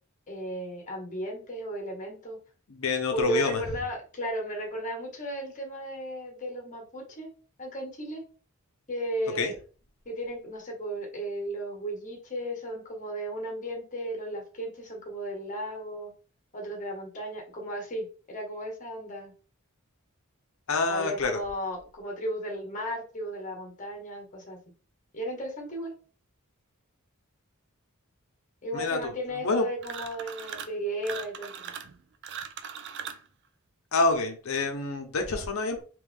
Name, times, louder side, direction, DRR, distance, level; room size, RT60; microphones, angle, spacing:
voice 1, 0.3-2.4 3.1-7.3 7.6-8.2 8.9-9.5 10.0-16.1 16.5-19.3 20.9-24.6 25.1-25.9 28.6-31.7, equal, 35° left, 1.2 m, -35 dB
voice 2, 2.7-3.6 9.4-9.5 20.7-21.4 28.7-29.1 29.4-29.7 33.9-35.8, left 3 dB, 70° left, 0.7 m, -27 dB
sound 1, 29.8-30.8 31.0-33.3, right 7 dB, 55° right, 0.4 m, -39 dB
3.4 x 3.1 x 3.4 m
head